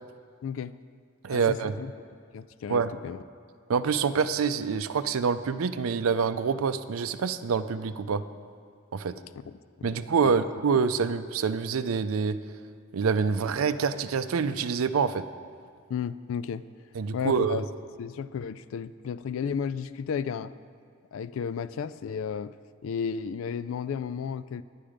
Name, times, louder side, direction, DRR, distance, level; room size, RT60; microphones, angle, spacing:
voice 1, 0.4-0.8 1.3-1.9 2.3-3.2 9.5-10.0 10.2-10.4 15.9-16.6 17.1-17.6 18.0-20.5 21.1-22.5 22.8-24.6, left 7 dB, 75° left, 16 dB, 0.3 m, -33 dB
voice 2, 1.2-1.7 2.7-3.0 3.7-8.2 8.9-9.2 9.8-12.4 12.9-15.2 17.0-17.6, right 5 dB, 90° right, 12 dB, 0.5 m, -26 dB
10.5 x 10.0 x 5.0 m, 2.1 s
head